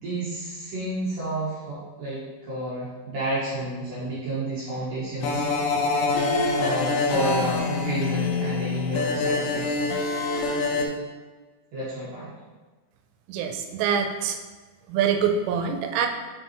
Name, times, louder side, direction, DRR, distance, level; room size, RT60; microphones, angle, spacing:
voice 1, 0.0-5.4 6.5-10.1 11.7-12.3, right 1 dB, 70° right, -9 dB, 2.2 m, -30 dB
sound 1, 5.2-10.9, left 3 dB, 80° left, 2.7 m, -25 dB
voice 2, 13.3-14.4 14.9-16.1, right 7 dB, 90° right, 5 dB, 3.2 m, -25 dB
6.5 x 5.5 x 3.0 m, 1.3 s
omnidirectional pair, 5.5 m